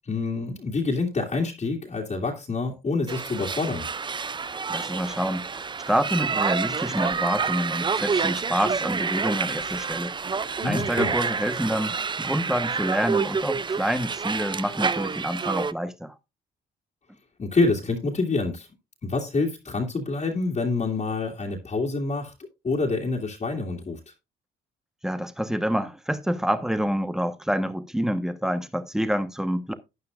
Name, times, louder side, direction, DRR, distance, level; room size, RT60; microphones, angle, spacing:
voice 1, 0.1-3.9 10.6-11.1 17.4-18.7 19.0-22.3 22.6-24.0, left 3 dB, 35° left, 2.4 m, -27 dB
sound 1, 3.1-15.7, right 5 dB, 25° right, 0.5 m, -28 dB
voice 2, 4.7-10.1 10.6-16.1 25.0-29.7, equal, ahead, 1.2 m, -27 dB
12.5 x 9.5 x 2.5 m
cardioid pair, 90°, 20 cm